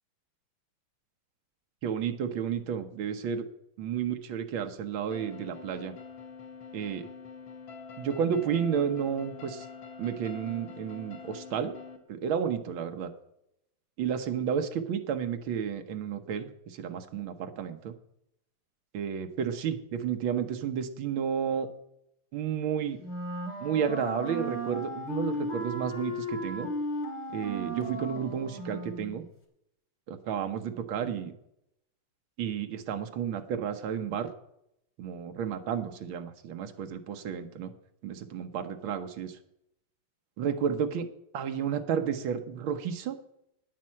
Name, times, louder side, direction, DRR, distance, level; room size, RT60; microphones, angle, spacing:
voice 1, 1.8-3.5 3.8-5.9 6.7-7.1 8.0-9.7 10.0-11.7 12.1-13.1 14.0-18.0 18.9-21.7 22.3-23.0 23.6-26.7 27.3-29.2 30.1-31.3 32.4-34.3 35.0-37.7 38.0-39.4 40.4-41.1 41.3-43.2, right 8 dB, 70° right, 7 dB, 1.8 m, -32 dB
sound 1, 5.1-12.0, left 5 dB, 70° left, 2.1 m, -45 dB
Wind instrument woodwind instrument, 23.0-29.2, equal, 15° left, 2.0 m, -35 dB
9.5 x 9.0 x 7.5 m, 0.81 s
omnidirectional pair, 2.3 m